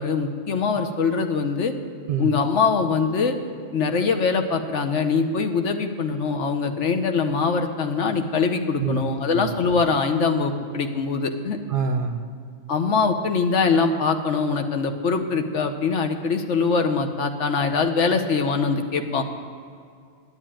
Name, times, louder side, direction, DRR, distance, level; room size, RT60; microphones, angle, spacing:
voice 1, 0.0-1.7 2.2-3.4 3.7-11.6 12.7-19.2, left 5 dB, 65° left, 6 dB, 1.2 m, -23 dB
voice 2, 8.8-9.5 11.7-12.2, right 4 dB, 50° right, 6 dB, 0.8 m, -26 dB
11.0 x 8.3 x 8.9 m, 2.3 s
omnidirectional pair, 1.3 m